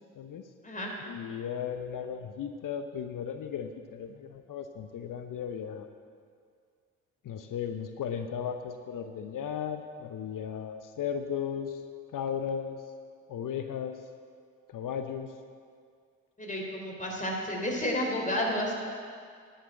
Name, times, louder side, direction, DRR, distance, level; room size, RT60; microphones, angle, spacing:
voice 1, 1.1-5.8 7.2-11.8 12.1-12.8 13.3-14.0 14.7-15.3, left 8 dB, 55° left, 8 dB, 0.8 m, -36 dB
voice 2, 16.4-18.7, left 1 dB, 20° left, -1 dB, 3.3 m, -31 dB
10.5 x 6.8 x 7.8 m, 2.1 s
hypercardioid pair, 45°, 40 cm